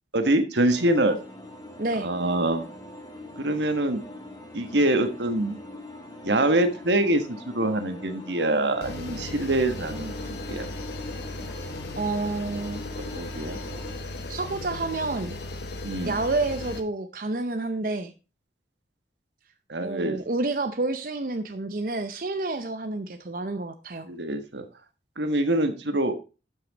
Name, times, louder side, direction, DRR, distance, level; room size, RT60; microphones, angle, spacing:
voice 1, 0.1-1.2 2.0-2.6 3.4-4.0 4.5-5.6 6.2-10.7 13.0-13.6 15.8-16.2 19.7-20.2 24.1-24.6 25.2-26.1, right 1 dB, 80° right, 8 dB, 1.5 m, -25 dB
sound 1, 0.7-13.9, left 1 dB, 20° left, 1.7 m, -42 dB
voice 2, 1.8-2.1 12.0-13.2 14.3-15.3 16.1-18.1 19.8-24.1, right 2 dB, 50° right, 7 dB, 0.7 m, -29 dB
sound 2, 8.8-16.8, left 2 dB, 70° left, 1.3 m, -36 dB
12.0 x 6.0 x 4.1 m, 0.32 s
head